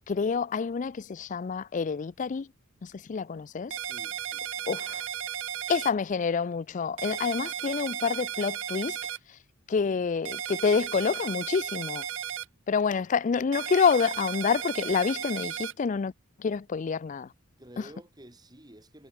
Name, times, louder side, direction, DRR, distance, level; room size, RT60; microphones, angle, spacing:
voice 1, 0.1-2.5 2.8-3.8 4.7-5.0 5.7-9.0 9.3-9.4 9.7-12.1 12.7-16.1 16.4-17.3 17.8-17.9, left 5 dB, 40° left, 0.4 m, -28 dB
sound 1, 3.7-5.9 7.0-9.2 10.2-12.4 13.5-15.7, right 10 dB, 65° right, 0.7 m, -35 dB
voice 2, 3.8-5.1 17.6-19.1, right 1 dB, 20° right, 3.8 m, -51 dB
head